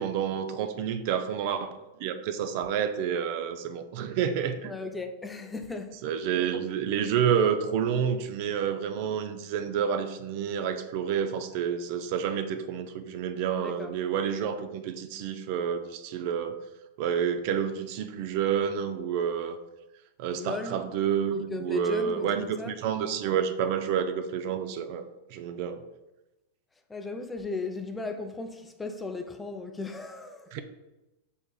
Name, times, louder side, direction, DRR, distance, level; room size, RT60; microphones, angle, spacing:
voice 1, 0.0-1.7 2.0-4.7 6.0-16.6 17.0-19.6 20.2-25.8 30.5-30.6, right 8 dB, 55° right, 0.4 m, -29 dB
voice 2, 4.6-6.1 13.6-13.9 20.4-20.8 21.3-22.8 26.9-30.6, left 3 dB, 10° left, 0.4 m, -36 dB
5.3 x 3.5 x 2.3 m
hypercardioid pair, 95°, 0 cm